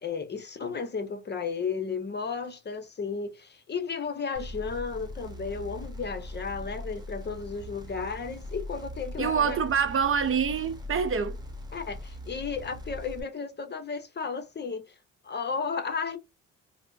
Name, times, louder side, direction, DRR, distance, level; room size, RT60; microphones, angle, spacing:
voice 1, 0.0-9.6 11.7-14.9 15.2-16.2, left 5 dB, 35° left, 0.9 m, -34 dB
sound 1, 4.3-13.2, left 1 dB, 15° right, 1.2 m, -41 dB
voice 2, 9.2-11.4, right 6 dB, 45° right, 0.7 m, -26 dB
4.4 x 2.1 x 2.6 m
cardioid pair, 90°, 30 cm